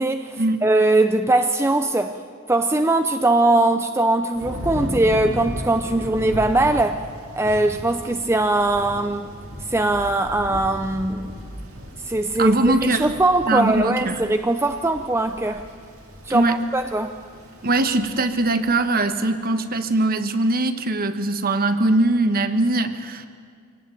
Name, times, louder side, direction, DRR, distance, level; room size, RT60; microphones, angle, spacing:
voice 1, 0.0-2.2 2.5-7.0 7.4-9.3 9.7-11.3 12.1-12.6 12.9-15.7 16.3-17.1, right 2 dB, 10° right, 7 dB, 0.6 m, -20 dB
Thunder / Rain, 4.3-19.9, equal, 75° right, 4.8 m, -36 dB
voice 2, 12.4-13.1 13.5-14.2 16.3-16.6 17.6-23.3, right 2 dB, 45° right, 9 dB, 1.3 m, -21 dB
24.5 x 18.0 x 9.1 m, 2.1 s
head